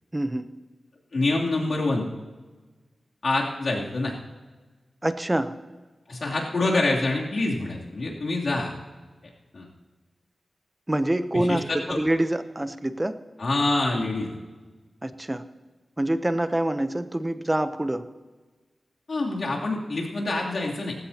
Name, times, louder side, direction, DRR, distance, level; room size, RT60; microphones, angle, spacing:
voice 1, 0.1-0.5 5.0-5.5 10.9-13.1 15.0-15.4 16.0-18.0, right 1 dB, 15° right, 11 dB, 0.7 m, -26 dB
voice 2, 1.1-2.1 3.2-4.1 6.1-8.7 9.5-9.7 11.3-12.0 13.4-14.3 19.1-21.0, left 2 dB, 60° left, -3 dB, 2.9 m, -26 dB
18.0 x 15.5 x 2.9 m, 1.3 s
wide cardioid pair, 95°, 0 cm